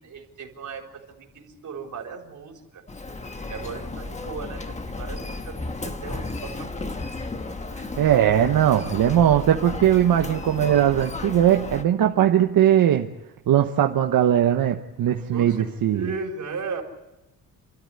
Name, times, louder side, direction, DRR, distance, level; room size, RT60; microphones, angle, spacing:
voice 1, 0.0-2.8 3.5-6.9 15.3-15.6 15.9-16.8, right 5 dB, 55° right, 1 dB, 4.1 m, -36 dB
Human voice, 2.9-11.8, left 3 dB, 20° left, 1.2 m, -34 dB
voice 2, 7.7-13.1 13.5-16.0, right 10 dB, 80° right, 4 dB, 1.2 m, -20 dB
29.0 x 13.0 x 9.9 m, 0.98 s
wide cardioid pair, 155°, 35 cm